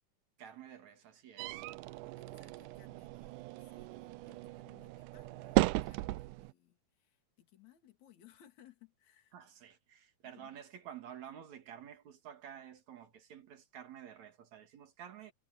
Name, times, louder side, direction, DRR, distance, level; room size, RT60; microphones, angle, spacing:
voice 1, 0.4-1.6 9.3-15.3, right 9 dB, 60° right, 3.0 m, -51 dB
sound 1, 1.4-6.5, right 19 dB, 80° right, 1.9 m, -36 dB
voice 2, 1.9-9.3 10.2-10.5, left 11 dB, 55° left, 3.5 m, -63 dB
omnidirectional pair, 4.0 m